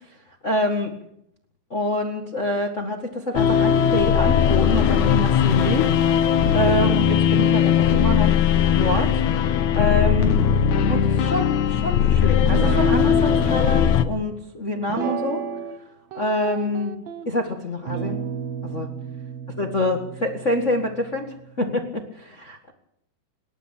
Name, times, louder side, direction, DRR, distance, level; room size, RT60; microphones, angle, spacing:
voice 1, 0.4-0.9 1.7-6.1 6.5-8.4 8.8-9.2 9.7-10.4 10.9-15.4 16.1-16.9 17.2-18.2 18.6-18.9 19.6-22.7, left 1 dB, 60° left, 3 dB, 0.7 m, -26 dB
sound 1, 3.4-14.0, left 8 dB, 85° left, 1.6 m, -19 dB
Guitar, 12.4-13.6 14.9-15.8 16.1-17.3 17.9-21.3, right 8 dB, 75° right, 1.5 m, -31 dB
27.5 x 11.5 x 9.0 m, 0.78 s
omnidirectional pair, 4.7 m